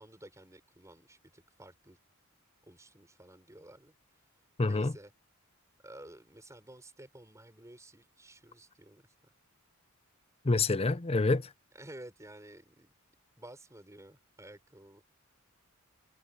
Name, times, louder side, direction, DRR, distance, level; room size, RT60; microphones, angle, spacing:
voice 1, 0.0-2.0 2.7-3.9 4.6-5.1 5.8-9.1 11.7-12.9 13.4-15.0, right 1 dB, 15° right, 4.6 m, -52 dB
voice 2, 4.6-4.9 10.5-11.4, left 3 dB, 25° left, 0.6 m, -27 dB
head